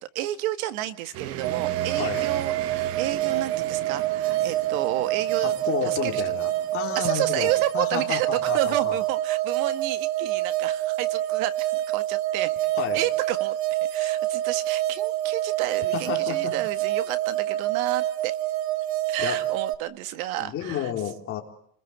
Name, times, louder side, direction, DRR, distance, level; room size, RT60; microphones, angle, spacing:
voice 1, 0.0-5.5 5.8-6.2 7.0-12.5 12.9-18.4 19.1-20.9, right 14 dB, 75° right, 12 dB, 1.8 m, -31 dB
sound 1, 1.1-7.6, right 11 dB, 35° right, 1.1 m, -38 dB
sound 2, 1.4-19.8, right 14 dB, 55° right, 1.6 m, -27 dB
voice 2, 5.4-9.0 12.8-13.0 14.0-14.1 15.9-16.6 19.2-19.4 20.4-21.4, left 10 dB, 30° left, 2 dB, 4.0 m, -31 dB
29.0 x 21.5 x 8.2 m, 0.69 s
cardioid pair, 170°, 42 cm